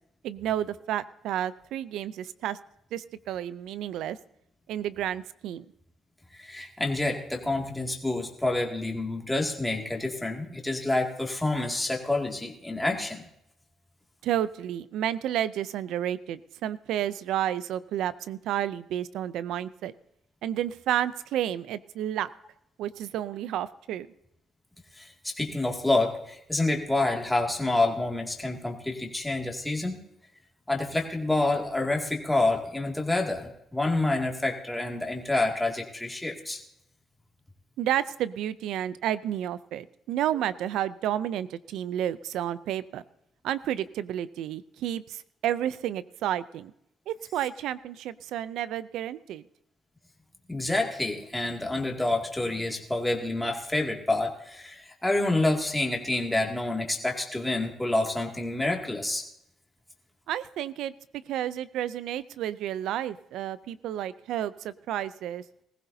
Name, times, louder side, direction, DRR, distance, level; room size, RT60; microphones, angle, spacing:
voice 1, 0.2-2.6 2.9-4.2 4.7-5.6 14.2-19.9 20.4-22.3 22.8-24.1 37.8-43.0 43.4-46.7 47.1-49.4 60.3-60.9 61.3-65.4, right 11 dB, 85° right, 16 dB, 0.5 m, -31 dB
voice 2, 6.3-13.2 25.0-30.0 30.7-36.6 50.5-59.2, left 2 dB, 10° left, 0 dB, 2.3 m, -28 dB
20.0 x 15.0 x 2.7 m, 0.79 s
cardioid pair, 90°, 0 cm